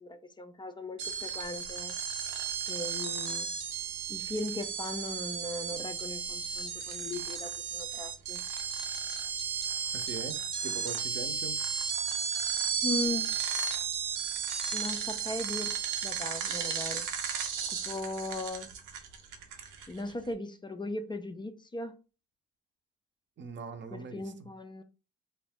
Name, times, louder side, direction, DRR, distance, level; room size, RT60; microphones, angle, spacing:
voice 1, 0.0-2.0 2.7-3.5 4.1-8.4 12.8-13.4 14.7-15.7 16.0-17.1 17.7-18.7 19.9-21.9 23.9-24.8, left 2 dB, 15° left, 0.3 m, -38 dB
sound 1, 1.0-20.1, right 7 dB, 85° right, 0.6 m, -34 dB
voice 2, 9.9-11.6 23.4-24.5, right 5 dB, 40° right, 0.5 m, -42 dB
2.5 x 2.1 x 3.5 m
cardioid pair, 90°, 30 cm